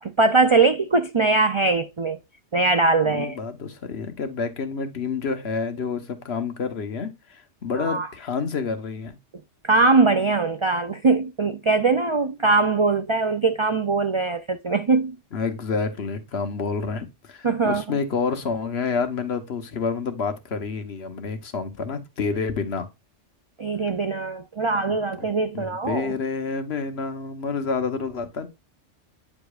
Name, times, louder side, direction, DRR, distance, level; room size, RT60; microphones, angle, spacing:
voice 1, 0.0-2.2 2.5-3.4 7.7-8.1 9.6-15.1 17.4-18.0 23.6-26.2, right 3 dB, 45° right, 0.4 m, -21 dB
voice 2, 3.0-9.1 15.3-22.9 24.9-25.3 25.5-28.5, left 5 dB, 60° left, 1.3 m, -29 dB
9.4 x 5.0 x 2.4 m
omnidirectional pair, 1.3 m